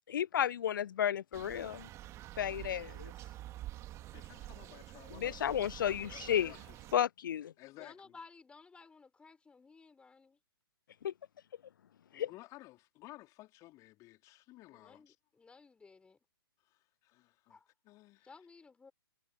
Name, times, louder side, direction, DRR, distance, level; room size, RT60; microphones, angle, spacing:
voice 1, 0.1-1.9 2.4-3.1 5.1-6.5 6.9-7.5 11.0-11.1 12.2-12.3, left 10 dB, 55° left, 0.4 m, -33 dB
sound 1, 1.3-7.0, right 15 dB, 20° right, 2.7 m, -48 dB
voice 2, 4.1-5.7 6.0-6.8 7.6-8.2 12.1-15.2 16.7-17.6 17.8-18.3, left 18 dB, 25° left, 4.2 m, -55 dB
voice 3, 7.8-10.4 14.7-16.2 17.5-17.7 18.2-18.9, left 4 dB, 10° left, 5.6 m, -57 dB
figure-of-eight pair, 120°, 13 cm